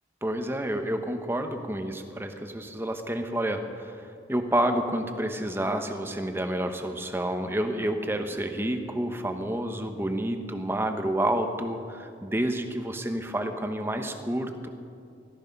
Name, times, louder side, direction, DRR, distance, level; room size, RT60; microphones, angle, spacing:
voice 1, 0.2-14.7, right 1 dB, 10° right, 6 dB, 1.0 m, -29 dB
18.0 x 13.5 x 5.3 m, 2.5 s
head